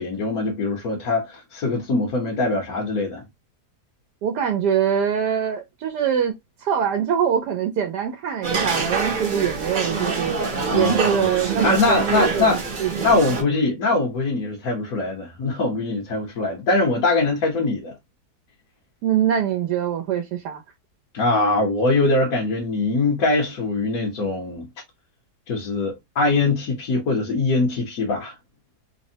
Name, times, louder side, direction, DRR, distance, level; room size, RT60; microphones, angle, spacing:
voice 1, 0.0-3.2 10.7-12.6 13.0-17.9 21.1-24.7 25.5-28.3, left 3 dB, 65° left, 1.2 m, -22 dB
voice 2, 4.2-6.3 6.6-10.4 10.7-13.6 19.0-20.6, right 8 dB, 90° right, 1.2 m, -23 dB
sound 1, 8.4-13.4, right 4 dB, 45° right, 0.6 m, -26 dB
3.3 x 2.0 x 2.7 m
omnidirectional pair, 1.7 m